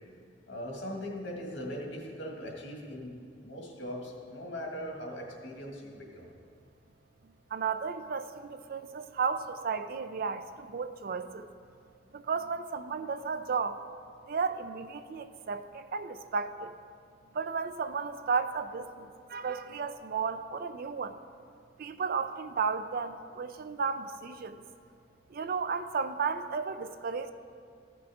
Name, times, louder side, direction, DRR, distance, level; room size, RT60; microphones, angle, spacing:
voice 1, 0.5-3.1 3.4-6.3, equal, 80° left, -1 dB, 1.9 m, -40 dB
voice 2, 7.5-11.5 12.1-13.8 14.3-16.8 17.3-21.2 21.8-24.6 25.3-27.3, right 5 dB, 55° right, 11 dB, 0.4 m, -33 dB
14.5 x 6.1 x 3.6 m, 2.3 s
head